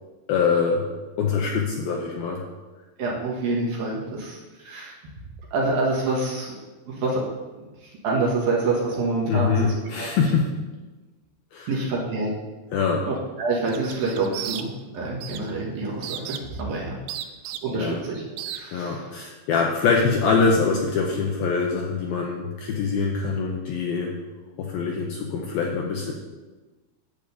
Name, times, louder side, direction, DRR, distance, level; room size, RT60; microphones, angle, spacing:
voice 1, 0.3-0.8 1.2-2.4 9.3-10.5 11.5-11.7 12.7-13.0 17.7-18.0 18.7-24.1 24.6-26.1, left 5 dB, 80° left, 0 dB, 2.2 m, -24 dB
voice 2, 3.0-4.9 5.5-6.5 6.9-7.2 7.6-10.1 11.7-12.3 13.0-17.0 17.6-19.1, right 3 dB, 60° right, -3 dB, 3.0 m, -27 dB
sound 1, 13.7-14.9 15.2-15.5 16.0-16.6 17.1-17.9 18.4-18.6, right 11 dB, 85° right, 2.4 m, -34 dB
10.5 x 5.0 x 8.2 m, 1.2 s
omnidirectional pair, 5.3 m